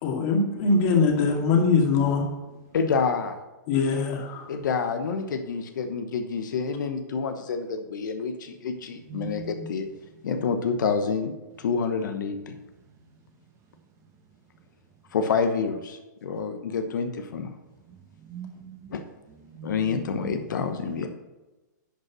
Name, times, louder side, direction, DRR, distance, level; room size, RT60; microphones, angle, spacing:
voice 1, 0.0-2.3 3.7-4.4, left 4 dB, 45° left, 1 dB, 2.3 m, -22 dB
voice 2, 2.7-3.4 4.5-9.9 10.2-11.3 11.6-12.5 15.1-17.5 18.9-19.0 19.6-21.1, left 5 dB, 75° left, 7 dB, 1.0 m, -28 dB
voice 3, 9.1-9.7 18.3-18.8 19.5-20.3, right 6 dB, 30° right, 4 dB, 1.4 m, -40 dB
10.5 x 5.4 x 6.1 m, 1.1 s
hypercardioid pair, 135°, 10 cm